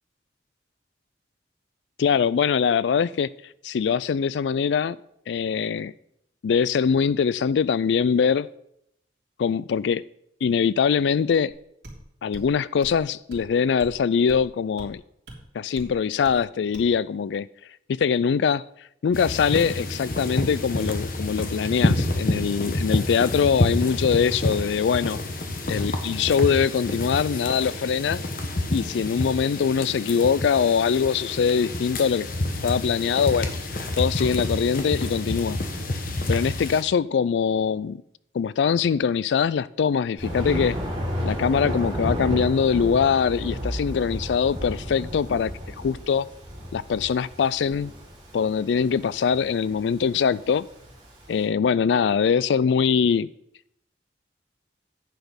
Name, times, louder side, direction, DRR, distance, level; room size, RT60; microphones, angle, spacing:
voice 1, 2.0-3.3 3.6-5.0 5.3-5.9 6.4-8.5 9.4-10.0 10.4-11.5 12.2-15.0 15.5-17.5 17.9-18.6 19.0-25.2 25.7-28.2 28.7-32.3 32.6-33.6 34.0-35.6 36.3-38.0 38.3-40.8 41.2-45.5 45.8-46.3 46.7-47.9 48.3-50.7 51.3-53.3, left 6 dB, 80° left, 0.3 m, -22 dB
sound 1, 11.5-11.6 11.8-12.0 12.3-12.5 12.8-13.0 13.3-13.5 13.8-14.0 14.3-14.5 14.8-14.9 15.3-15.4 15.8-15.9 16.2-16.4 16.7-16.9, right 1 dB, 75° right, 3.4 m, -42 dB
sound 2, 19.1-36.8, left 1 dB, 50° left, 1.2 m, -28 dB
Thunder, 40.2-51.3, equal, 20° right, 5.0 m, -32 dB
10.0 x 8.2 x 5.2 m
head